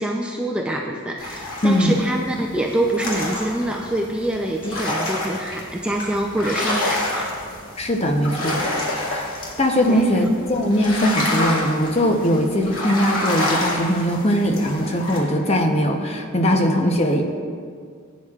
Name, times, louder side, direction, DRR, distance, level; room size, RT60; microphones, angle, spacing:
voice 1, 0.0-7.3 9.9-10.3, right 1 dB, 5° right, -1 dB, 0.5 m, -25 dB
sound 1, 1.2-15.2, left 1 dB, 85° left, 2.2 m, -28 dB
voice 2, 1.6-2.0 7.8-8.6 9.1-9.3 9.6-17.4, equal, 30° left, 3 dB, 0.8 m, -20 dB
16.0 x 9.2 x 2.4 m, 2.1 s
head